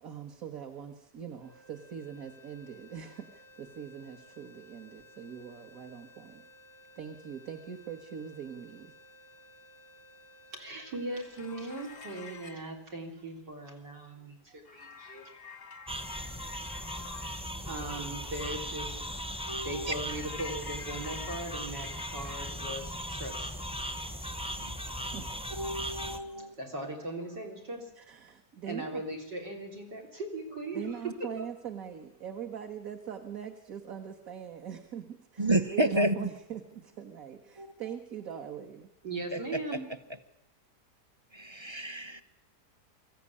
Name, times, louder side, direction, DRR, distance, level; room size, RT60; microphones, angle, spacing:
voice 1, 0.0-6.4 7.0-8.9 25.1-25.3 28.0-29.0 30.7-38.9, right 8 dB, 55° right, 4 dB, 1.8 m, -42 dB
sound 1, 1.4-13.6, left 1 dB, 75° right, 4.4 m, -57 dB
voice 2, 10.5-15.3 15.7-15.9 16.9-19.2 19.6-23.5 24.8-25.1 26.4-27.9 28.7-31.0 31.4-31.5 39.0-39.8, right 2 dB, 90° right, 2 dB, 4.2 m, -39 dB
sound 2, 11.1-12.7 14.7-17.5 20.1-22.5, left 5 dB, 35° left, 0.7 m, -48 dB
sound 3, 15.9-26.2, equal, 5° right, 0.8 m, -38 dB
voice 3, 19.5-19.9 24.6-24.7 25.6-26.5 35.4-36.2 37.6-37.7 39.3-39.4 41.3-42.2, right 1 dB, 30° right, 11 dB, 0.5 m, -30 dB
23.0 x 14.5 x 9.8 m, 0.88 s
omnidirectional pair, 1.8 m